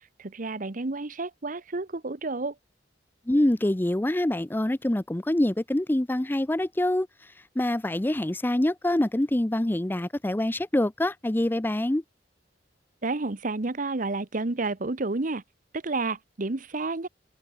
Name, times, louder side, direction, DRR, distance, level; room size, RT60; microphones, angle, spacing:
voice 1, 0.0-2.5 13.0-15.4 15.7-17.1, right 3 dB, 45° right, 1.0 m, -30 dB
voice 2, 3.3-12.0, left 1 dB, 10° left, 0.5 m, -25 dB
head